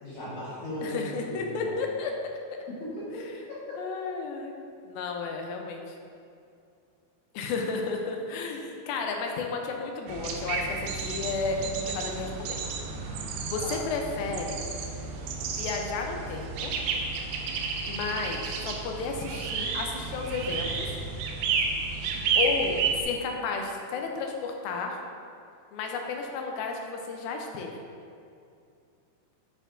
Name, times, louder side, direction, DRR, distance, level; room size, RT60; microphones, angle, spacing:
voice 1, 0.0-1.7 2.7-3.1 3.7-3.8 13.6-13.8, left 1 dB, 65° left, -11 dB, 2.6 m, -37 dB
voice 2, 0.8-2.1 3.8-4.6 4.8-5.9 7.3-12.6 13.5-14.6 15.6-16.7 17.9-21.0 22.3-25.0 25.7-27.8, left 4 dB, 80° left, 2 dB, 2.4 m, -32 dB
sound 1, 10.1-23.0, right 4 dB, 85° right, 2.4 m, -31 dB
9.0 x 4.3 x 2.5 m, 2.4 s
omnidirectional pair, 4.3 m